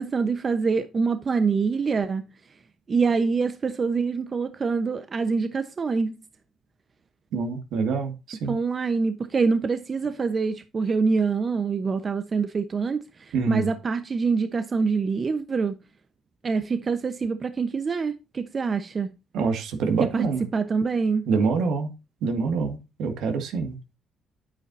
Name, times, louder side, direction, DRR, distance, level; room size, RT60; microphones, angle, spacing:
voice 1, 0.0-2.3 2.9-6.1 8.5-15.8 16.4-19.1 20.0-20.2 20.5-21.2, right 4 dB, 45° right, 0.9 m, -25 dB
voice 2, 7.3-8.6 13.3-13.7 19.3-20.4 21.3-21.9 22.2-23.8, right 5 dB, 80° right, 2.0 m, -26 dB
9.3 x 8.7 x 2.7 m
supercardioid pair, 65°, 0 cm